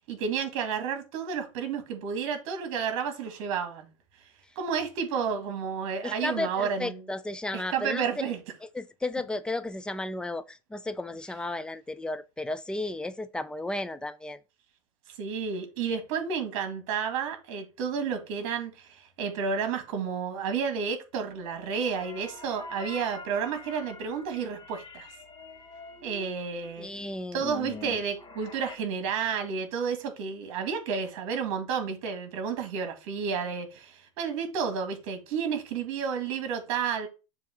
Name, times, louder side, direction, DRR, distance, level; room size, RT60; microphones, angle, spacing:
voice 1, 0.1-3.9 4.6-7.0 7.5-8.4 15.2-25.1 26.0-26.9 27.3-37.1, right 6 dB, 60° right, 2.0 m, -31 dB
voice 2, 6.0-8.0 8.7-14.4 26.8-27.4, left 2 dB, 5° left, 0.4 m, -34 dB
sound 1, 21.3-28.8, left 4 dB, 25° left, 1.1 m, -45 dB
7.0 x 2.8 x 5.9 m
supercardioid pair, 130°, 17 cm